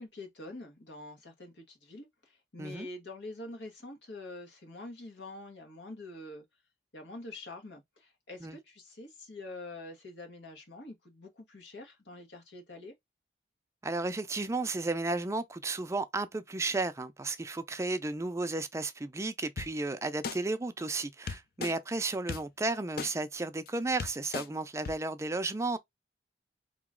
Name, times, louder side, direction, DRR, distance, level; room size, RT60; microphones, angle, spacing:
voice 1, 0.0-6.4 6.9-12.9, left 2 dB, 85° left, 1.5 m, -46 dB
voice 2, 13.8-25.8, right 2 dB, 15° right, 0.4 m, -33 dB
sound 1, 19.6-19.7 20.2-20.4 21.3-21.7 22.3-22.4 23.0-23.1 23.7-23.8 24.0-24.5 24.8-24.9, left 5 dB, 55° left, 0.5 m, -35 dB
3.9 x 3.0 x 3.6 m
head